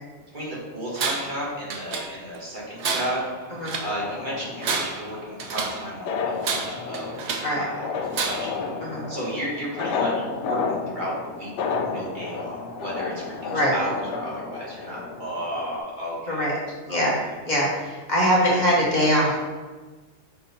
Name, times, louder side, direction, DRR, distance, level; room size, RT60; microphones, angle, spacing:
voice 1, 0.3-3.2 3.8-7.1 7.6-8.5 9.1-10.1 10.4-16.5 16.9-17.1 18.2-18.3, equal, 40° right, -6 dB, 1.8 m, -33 dB
Tools, 1.0-1.4 1.7-2.4 2.8-4.0 4.5-5.9 6.4-7.6 8.1-8.6, right 4 dB, 70° right, 1.0 m, -29 dB
sound 1, 4.0-15.8, left 5 dB, 75° left, 0.9 m, -32 dB
voice 2, 16.9-17.2 17.5-19.4, equal, 40° left, -4 dB, 1.2 m, -22 dB
6.7 x 3.8 x 4.1 m, 1.3 s
omnidirectional pair, 1.2 m